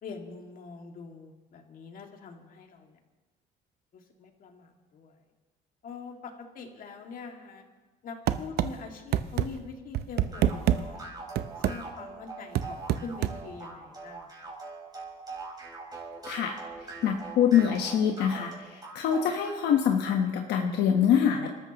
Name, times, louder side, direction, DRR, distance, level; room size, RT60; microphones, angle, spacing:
voice 1, 0.0-3.0 3.9-5.2 5.8-7.6 8.0-11.1 11.6-14.6, left 5 dB, 55° left, 2 dB, 2.2 m, -44 dB
sound 1, 8.3-8.7 9.1-9.5 9.9-10.8 11.4-11.8 12.5-13.4, right 12 dB, 70° right, 0.7 m, -25 dB
sound 2, 10.3-19.6, right 3 dB, 25° right, 5.0 m, -42 dB
voice 2, 17.0-21.5, left 8 dB, 80° left, 2 dB, 1.2 m, -25 dB
29.0 x 13.5 x 3.0 m, 1.3 s
cardioid pair, 110°, 17 cm